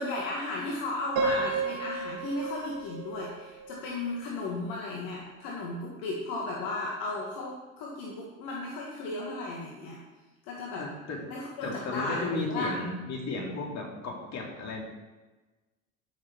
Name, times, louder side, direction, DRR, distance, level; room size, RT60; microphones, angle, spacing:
voice 1, 0.0-10.0 10.4-10.9 11.3-12.7, left 2 dB, 55° left, -2 dB, 1.9 m, -35 dB
Piano, 1.2-4.2, right 4 dB, 60° right, 3.3 m, -33 dB
voice 2, 10.8-11.2 11.6-14.8, left 3 dB, 40° left, 0 dB, 3.0 m, -34 dB
12.5 x 6.5 x 4.6 m, 1.2 s
hypercardioid pair, 75°, 40 cm